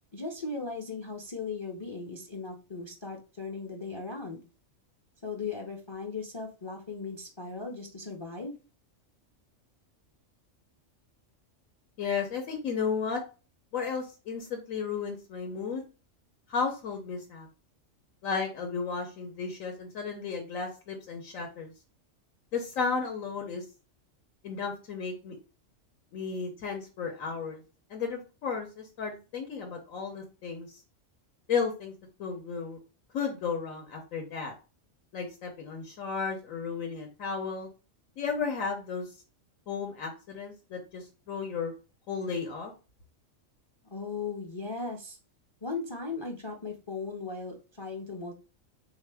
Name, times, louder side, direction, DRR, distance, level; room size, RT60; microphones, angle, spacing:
voice 1, 0.1-4.4 5.2-8.5 43.8-45.2 45.6-48.3, left 4 dB, 35° left, 2 dB, 0.4 m, -37 dB
voice 2, 12.0-13.2 13.7-15.8 16.5-17.5 18.2-21.7 22.5-23.6 24.4-25.4 26.1-27.6 27.9-30.8 31.5-31.9 32.2-32.8 33.1-34.5 35.1-37.7 38.2-39.1 39.7-41.7 42.1-42.7, left 5 dB, 80° left, 2 dB, 1.2 m, -33 dB
3.7 x 2.8 x 3.3 m, 0.33 s
omnidirectional pair, 1.4 m